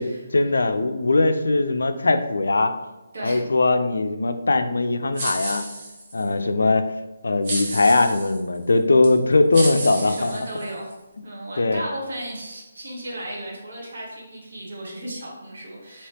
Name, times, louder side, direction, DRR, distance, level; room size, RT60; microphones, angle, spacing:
voice 1, 0.3-2.7 3.2-5.7 6.1-6.9 7.2-10.3 11.6-11.8, left 2 dB, 75° left, 8 dB, 0.3 m, -20 dB
voice 2, 3.1-3.4 9.8-10.9 11.2-16.1, right 1 dB, 65° right, -2 dB, 1.1 m, -35 dB
sound 1, 5.2-6.3 7.4-8.4 9.0-9.1 9.5-10.9, right 2 dB, 40° right, 0.9 m, -31 dB
3.1 x 2.9 x 2.8 m, 1.1 s
figure-of-eight pair, 150°, 0 cm